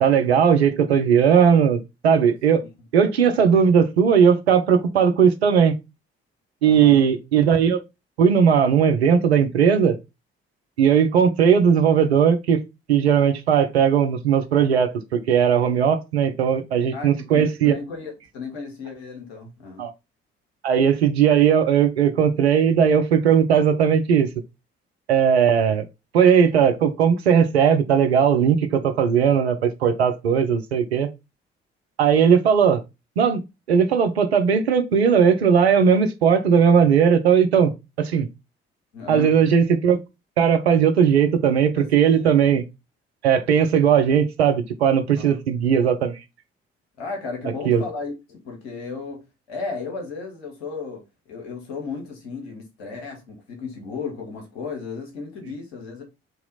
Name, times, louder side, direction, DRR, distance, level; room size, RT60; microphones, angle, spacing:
voice 1, 0.0-2.6 2.9-5.7 6.6-7.8 8.2-10.0 10.8-12.6 12.9-17.8 19.8-19.9 20.6-24.3 25.1-25.8 26.1-31.1 32.0-32.8 33.2-33.4 33.7-37.7 38.0-38.3 39.1-40.0 40.4-42.6 43.2-46.2 47.6-47.8, right 7 dB, 85° right, 0.5 m, -18 dB
voice 2, 6.6-7.1 16.9-19.8 38.9-39.3 41.7-42.4 45.1-45.4 47.0-49.2 49.5-56.0, left 4 dB, 80° left, 1.1 m, -34 dB
3.9 x 2.9 x 3.9 m
figure-of-eight pair, 45°, 31 cm